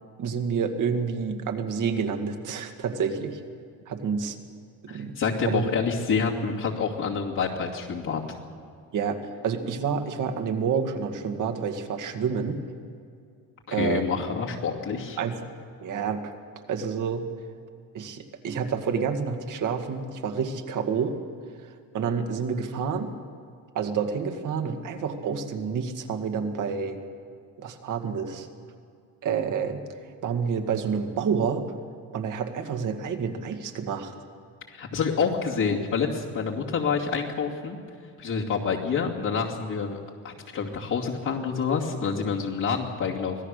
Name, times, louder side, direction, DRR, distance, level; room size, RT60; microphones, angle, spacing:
voice 1, 0.2-3.4 3.9-4.4 4.8-5.1 5.4-5.7 8.9-9.2 9.4-12.6 13.7-14.1 15.2-15.5 15.8-16.2 16.7-17.3 17.9-21.2 21.9-23.1 23.7-27.0 27.6-28.5 29.2-29.8 30.2-31.6 32.1-34.1, right 6 dB, 60° right, 6 dB, 2.1 m, -28 dB
voice 2, 4.9-8.2 13.7-15.2 34.7-37.8 38.2-40.0 40.2-43.4, left 5 dB, 60° left, -4 dB, 2.7 m, -27 dB
25.0 x 17.0 x 6.7 m, 2.3 s
cardioid pair, 100°, 36 cm